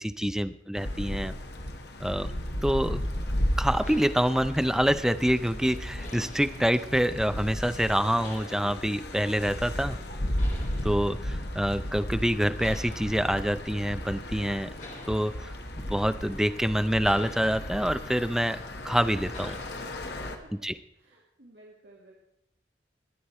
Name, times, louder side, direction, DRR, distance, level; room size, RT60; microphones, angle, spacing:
voice 1, 0.0-1.3 2.0-2.3 2.6-3.0 3.6-10.0 10.8-14.7 15.1-18.6 18.8-19.6 20.5-20.8, equal, 5° right, 11 dB, 0.4 m, -26 dB
sound 1, 0.7-20.4, left 1 dB, 65° left, 1.5 m, -34 dB
sound 2, 3.6-20.7, left 1 dB, 45° left, 3.5 m, -50 dB
voice 2, 20.9-22.1, right 1 dB, 70° right, -3 dB, 2.2 m, -55 dB
21.5 x 8.4 x 4.4 m, 0.84 s
head